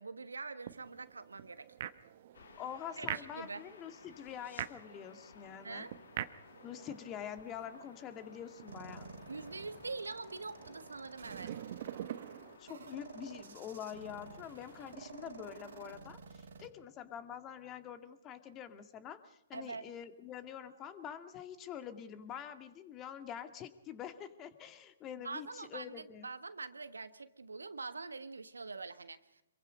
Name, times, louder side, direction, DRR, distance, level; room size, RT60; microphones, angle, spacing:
voice 1, 0.0-1.7 3.0-3.6 5.6-5.9 9.3-11.5 19.5-19.9 25.2-29.4, right 4 dB, 85° right, 13 dB, 1.4 m, -44 dB
sound 1, 0.6-12.6, right 11 dB, 50° right, 1.1 m, -47 dB
sound 2, 2.3-16.0, left 5 dB, 70° left, 2.6 m, -57 dB
voice 2, 2.6-5.9 6.6-9.1 12.6-26.3, left 9 dB, 25° left, 9 dB, 2.1 m, -46 dB
sound 3, 8.7-16.7, right 5 dB, 65° right, 3.1 m, -52 dB
26.5 x 23.5 x 5.2 m, 0.86 s
figure-of-eight pair, 125°, 0 cm